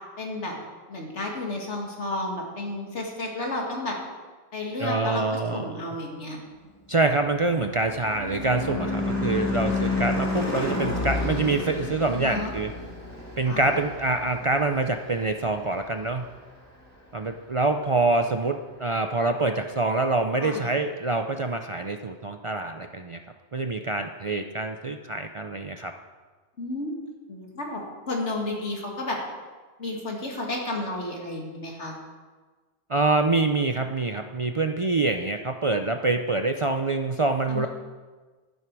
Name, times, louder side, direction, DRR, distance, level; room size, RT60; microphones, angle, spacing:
voice 1, 0.2-0.5 0.9-3.9 4.5-6.4 12.1-12.5 13.5-13.7 20.4-20.7 26.6-27.0 27.3-27.8 28.1-29.2 29.8-31.9 37.5-37.7, left 2 dB, 90° left, 0 dB, 2.5 m, -32 dB
voice 2, 4.8-5.8 6.9-12.7 13.4-16.3 17.1-23.2 23.5-25.9 32.9-37.7, right 3 dB, 40° right, 6 dB, 0.4 m, -25 dB
Car passing by / Truck / Engine, 7.0-15.7, left 2 dB, 15° left, 2.2 m, -30 dB
12.0 x 11.0 x 4.7 m, 1.4 s
omnidirectional pair, 1.2 m